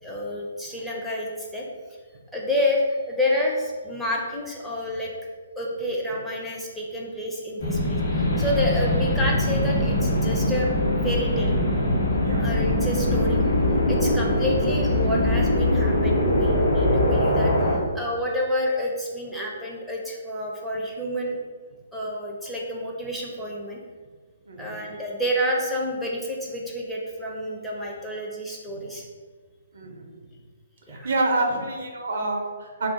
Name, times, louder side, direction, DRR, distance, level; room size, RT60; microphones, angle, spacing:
voice 1, 0.0-1.7 2.3-5.1 5.6-10.7 11.0-11.5 12.4-13.4 13.9-17.5 17.9-21.4 21.9-23.8 24.6-29.1 30.9-31.1, left 1 dB, 5° left, -4 dB, 0.4 m, -29 dB
sound 1, 7.6-17.8, left 1 dB, 55° left, 1.0 m, -22 dB
voice 2, 24.5-24.9 28.7-28.8 29.7-30.1 30.9-32.9, right 2 dB, 60° right, 2 dB, 0.5 m, -28 dB
2.3 x 2.3 x 3.8 m, 1.5 s
figure-of-eight pair, 130°, 0 cm